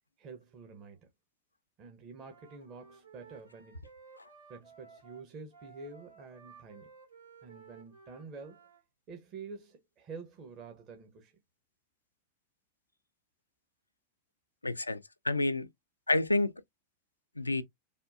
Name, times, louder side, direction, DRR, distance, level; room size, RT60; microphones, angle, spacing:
voice 1, 0.2-1.1 1.8-3.8 4.5-6.9 7.4-8.6 9.1-11.4, right 4 dB, 35° right, 0.7 m, -48 dB
Wind instrument woodwind instrument, 2.2-8.8, right 5 dB, 80° right, 2.1 m, -56 dB
voice 2, 14.6-15.7 16.1-16.5 17.4-17.6, left 2 dB, 80° left, 0.3 m, -29 dB
3.5 x 2.2 x 2.5 m
figure-of-eight pair, 90°, 0 cm